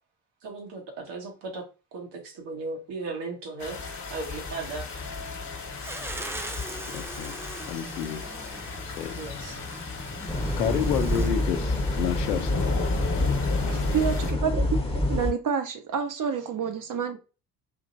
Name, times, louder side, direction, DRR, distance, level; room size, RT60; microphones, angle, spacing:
voice 1, 0.4-1.6 1.9-4.9 9.2-9.6, right 3 dB, 60° right, 1.6 m, -36 dB
sound 1, 3.6-14.3, left 4 dB, 40° left, 1.4 m, -34 dB
sound 2, 5.8-11.3, right 2 dB, 5° right, 0.4 m, -36 dB
voice 2, 6.9-7.4 7.7-8.2 9.0-9.2 10.6-12.5, left 10 dB, 85° left, 0.6 m, -29 dB
sound 3, 10.3-15.3, left 1 dB, 10° left, 1.1 m, -27 dB
voice 3, 13.2-14.7 14.9-17.2, right 7 dB, 40° right, 1.0 m, -29 dB
5.1 x 3.0 x 2.6 m
hypercardioid pair, 55°, 47 cm